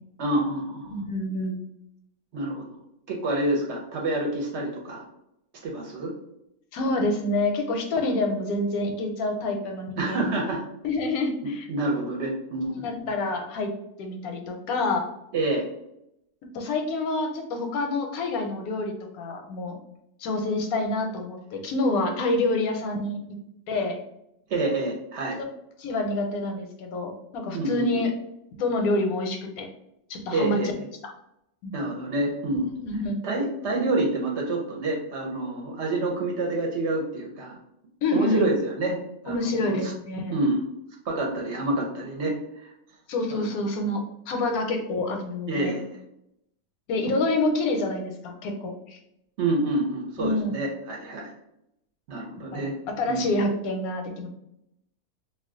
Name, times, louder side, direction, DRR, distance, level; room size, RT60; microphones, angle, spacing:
voice 1, 0.2-0.9 2.3-2.7 3.1-5.1 5.6-6.1 10.0-10.6 11.4-13.1 15.3-15.7 24.5-25.4 27.5-28.0 30.3-30.8 31.7-32.7 33.2-37.6 38.1-39.0 39.2-39.9 40.3-40.6 41.0-42.7 43.3-43.5 45.5-45.8 49.4-51.3 52.1-52.8 53.1-53.3, right 2 dB, 60° right, -1 dB, 0.8 m, -27 dB
voice 2, 0.9-1.6 6.7-10.3 10.8-11.7 12.8-13.7 14.0-15.1 16.5-19.8 20.2-23.2 23.7-24.0 25.8-28.1 28.5-29.7 30.1-30.6 31.6-31.8 32.8-33.2 38.0-38.5 39.3-40.3 43.1-45.8 46.9-49.0 50.2-50.6 52.5-52.7 53.0-54.3, left 2 dB, 85° left, 4 dB, 1.1 m, -27 dB
2.4 x 2.2 x 3.5 m, 0.80 s
omnidirectional pair, 1.5 m